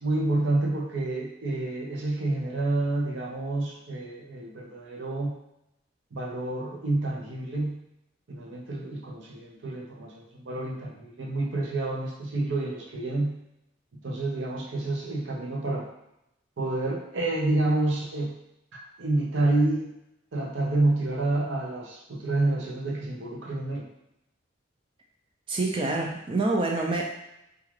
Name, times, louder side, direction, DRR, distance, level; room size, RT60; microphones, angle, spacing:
voice 1, 0.0-5.4 6.1-7.8 8.3-13.4 14.0-15.9 16.6-18.4 18.7-19.9 20.3-23.9, right 2 dB, 70° right, -1 dB, 0.6 m, -28 dB
voice 2, 25.5-27.0, right 2 dB, 25° right, 0 dB, 0.3 m, -26 dB
2.4 x 2.3 x 3.1 m, 0.86 s
head